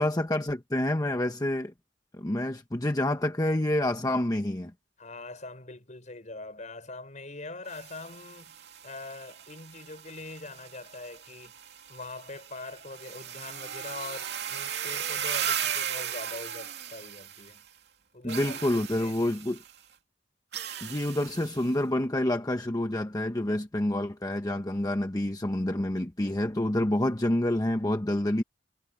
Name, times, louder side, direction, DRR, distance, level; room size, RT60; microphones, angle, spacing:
voice 1, 0.0-1.7 2.1-4.7 18.2-19.6 20.8-28.4, left 1 dB, 20° left, 0.9 m, -28 dB
voice 2, 5.0-8.6 8.8-11.5 11.9-17.6 18.1-19.3, left 2 dB, 45° left, 5.4 m, -43 dB
sound 1, 7.6-17.7 18.3-19.7 20.5-21.7, right 9 dB, 65° right, 2.7 m, -37 dB
head